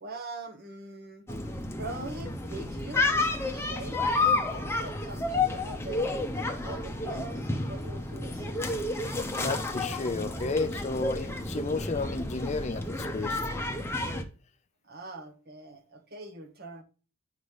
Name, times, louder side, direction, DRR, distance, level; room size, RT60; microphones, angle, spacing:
voice 1, 0.0-1.2 1.8-6.1 6.5-8.8 14.8-16.8, right 2 dB, 45° right, 1.2 m, -43 dB
sound 1, 1.3-14.2, left 2 dB, 10° left, 0.8 m, -31 dB
voice 2, 9.4-13.4, left 3 dB, 30° left, 0.4 m, -32 dB
10.5 x 3.9 x 3.3 m
head